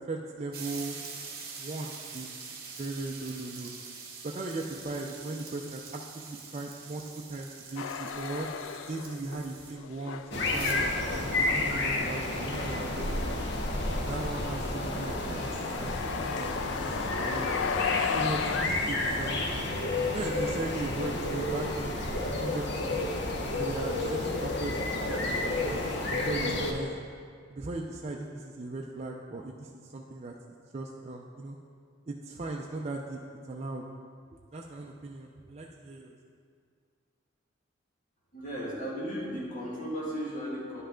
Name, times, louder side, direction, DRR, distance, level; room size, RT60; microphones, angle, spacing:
voice 1, 0.1-1.0 1.6-2.3 2.8-3.7 4.2-8.5 8.9-13.4 14.1-17.5 18.1-19.6 20.1-22.0 22.4-23.0 23.6-24.8 25.2-25.8 26.1-26.9 27.5-30.3 30.7-31.6 32.1-33.2 33.5-33.8 34.5-36.1, right 2 dB, 35° right, 0 dB, 0.4 m, -38 dB
sound 1, 0.5-9.7 10.4-10.7, right 5 dB, 50° right, 1.2 m, -44 dB
sound 2, 7.8-9.4 9.7-18.7, left 7 dB, 80° left, 0.3 m, -36 dB
sound 3, 10.3-26.7, left 2 dB, 65° left, 0.8 m, -31 dB
voice 2, 38.3-40.8, equal, 45° left, -5 dB, 2.0 m, -35 dB
10.0 x 5.5 x 3.7 m, 2.1 s
head